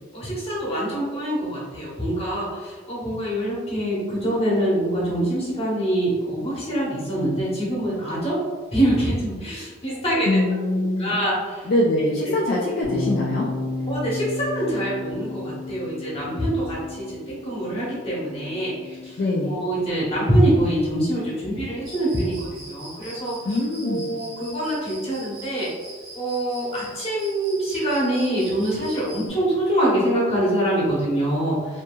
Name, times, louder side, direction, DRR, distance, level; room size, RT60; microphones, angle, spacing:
voice 1, 0.1-8.4 8.7-10.4 11.0-11.7 13.9-19.2 19.5-23.4 23.8-25.7 26.1-31.8, right 1 dB, 30° left, -7 dB, 1.0 m, -24 dB
voice 2, 10.3-11.1 11.7-13.5 19.2-19.6 23.4-24.1, left 1 dB, 50° left, -5 dB, 0.4 m, -23 dB
sound 1, 12.8-19.1, left 3 dB, ahead, 0.8 m, -32 dB
Cricket, 21.8-29.3, right 1 dB, 85° right, 1.1 m, -42 dB
2.7 x 2.6 x 2.3 m, 1.5 s
head